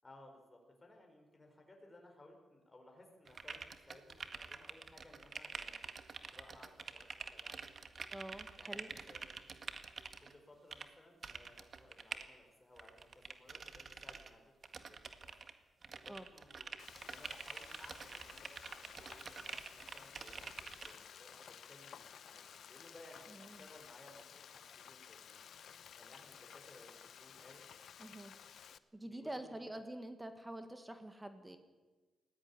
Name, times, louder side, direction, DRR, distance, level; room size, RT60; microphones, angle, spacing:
voice 1, 0.0-5.8 6.3-8.1 8.6-9.3 10.2-15.3 16.0-24.6 24.9-25.4 25.7-27.6 29.1-29.9, left 1 dB, 20° left, 2 dB, 5.1 m, -60 dB
sound 1, 3.3-10.3 10.7-10.9 11.2-12.2 12.8-14.3 14.6-15.5 15.8-20.9, right 5 dB, 45° right, 1.8 m, -47 dB
voice 2, 8.1-8.9 16.0-16.3 23.3-23.6 28.0-28.3 28.9-31.6, right 1 dB, 15° right, 8 dB, 1.9 m, -47 dB
Frying (food), 16.8-28.8, left 8 dB, 70° left, 0.9 m, -55 dB
20.0 x 17.0 x 10.0 m, 1.3 s
cardioid pair, 80°, 0 cm